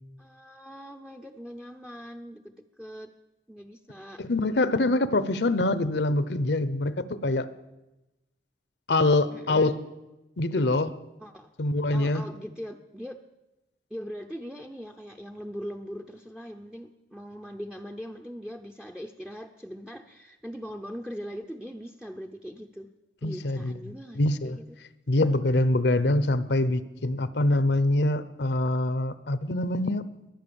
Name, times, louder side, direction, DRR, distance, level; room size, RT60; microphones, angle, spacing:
voice 1, 0.2-3.1 3.5-4.2 9.3-9.7 11.2-11.5 11.9-13.2 13.9-22.9 23.2-24.6, equal, 5° right, 5 dB, 0.6 m, -41 dB
voice 2, 4.2-7.5 8.9-9.9 10.4-11.0 11.6-12.2 23.2-23.7 24.1-24.6 25.1-30.1, left 2 dB, 65° left, 15 dB, 0.8 m, -24 dB
22.0 x 9.3 x 7.0 m, 1.0 s
head